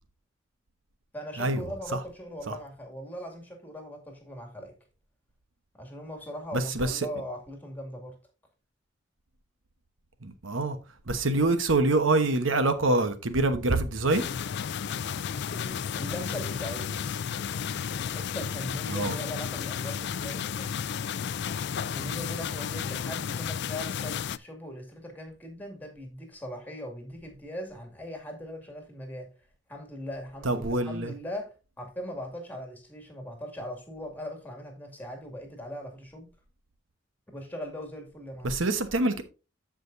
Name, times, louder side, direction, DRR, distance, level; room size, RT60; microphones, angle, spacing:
voice 1, 1.1-4.7 5.7-8.2 15.5-17.0 17.6-20.8 21.9-29.3 29.7-36.3 37.3-38.6, equal, 10° left, 2.3 m, -40 dB
voice 2, 6.5-7.0 10.2-10.8 11.1-14.2 18.9-19.1 30.4-31.1 38.4-39.2, right 2 dB, 80° right, 1.1 m, -25 dB
sound 1, 14.1-24.4, left 7 dB, 60° left, 0.4 m, -33 dB
14.5 x 5.1 x 2.6 m
head